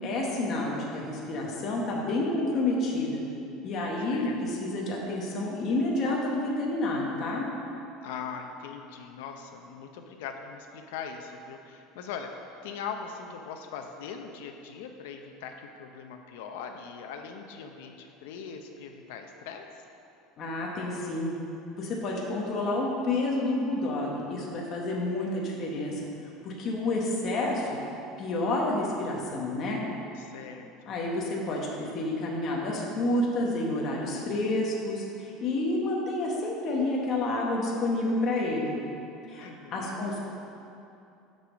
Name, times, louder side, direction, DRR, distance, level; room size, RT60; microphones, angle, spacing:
voice 1, 0.0-3.2 3.6-7.5 20.4-21.3 21.8-26.0 26.4-27.7 28.2-29.8 30.9-38.8 39.3-40.2, left 2 dB, 30° left, -2 dB, 1.0 m, -29 dB
voice 2, 8.0-12.3 12.6-19.7 30.1-30.9 39.4-40.1, left 6 dB, 85° left, 4 dB, 0.6 m, -41 dB
7.3 x 5.4 x 6.1 m, 2.8 s
cardioid pair, 175°, 0 cm